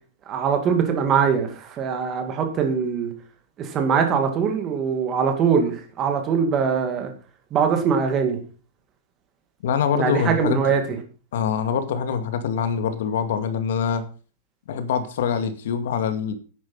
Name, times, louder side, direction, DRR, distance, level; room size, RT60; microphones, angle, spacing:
voice 1, 0.3-3.1 3.6-7.1 7.5-8.4 9.9-10.8, right 6 dB, 20° right, 5 dB, 2.4 m, -22 dB
voice 2, 9.6-10.8 11.3-14.0 14.7-16.3, left 7 dB, 70° left, 9 dB, 2.3 m, -24 dB
11.0 x 9.3 x 5.6 m, 0.37 s
supercardioid pair, 175°, 0 cm